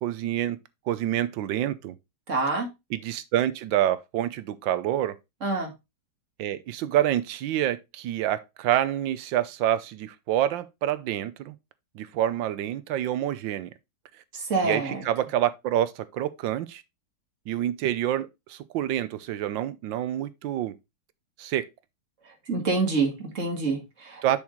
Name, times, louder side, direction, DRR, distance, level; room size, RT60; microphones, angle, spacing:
voice 1, 0.0-0.6 0.9-1.9 2.9-5.1 6.4-11.5 11.9-13.7 14.6-16.8 17.5-20.7 21.4-21.7 24.2-24.4, right 12 dB, 85° right, 1.4 m, -27 dB
voice 2, 2.3-2.7 5.4-5.7 14.3-15.0 22.5-24.4, right 3 dB, 40° right, 2.0 m, -27 dB
7.0 x 6.3 x 3.1 m
omnidirectional pair, 2.0 m